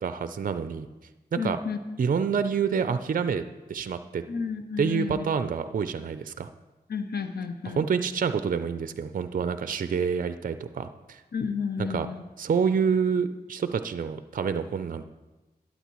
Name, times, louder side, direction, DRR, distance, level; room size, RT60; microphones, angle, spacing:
voice 1, 0.0-0.9 1.4-1.6 2.0-3.4 3.7-4.2 4.8-6.5 7.7-11.2 11.8-12.1 12.4-15.0, right 6 dB, 55° right, 11 dB, 0.5 m, -27 dB
voice 2, 1.4-1.8 4.3-5.2 6.9-7.9 11.3-12.2, left 5 dB, 65° left, 9 dB, 0.7 m, -31 dB
12.0 x 8.3 x 3.0 m, 1.1 s
cardioid pair, 40°, 17 cm